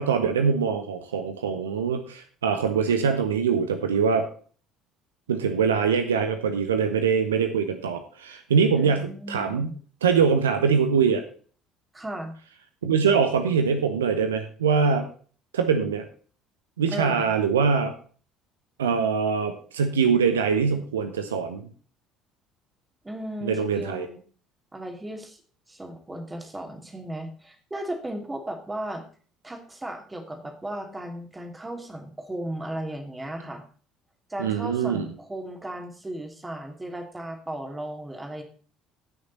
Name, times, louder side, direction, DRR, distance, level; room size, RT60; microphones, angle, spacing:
voice 1, 0.0-4.3 5.3-9.7 10.0-11.2 12.8-15.1 15.5-16.0 16.8-17.9 18.8-21.7 23.4-24.1 34.4-35.1, right 6 dB, 80° right, 8 dB, 0.9 m, -23 dB
voice 2, 8.7-9.8 11.9-12.3 16.9-17.3 23.0-24.2 24.7-25.4 25.7-29.0 29.4-33.6 34.3-38.4, right 1 dB, 15° right, 4 dB, 2.7 m, -35 dB
16.0 x 6.4 x 4.0 m, 0.42 s
figure-of-eight pair, 55°, 0 cm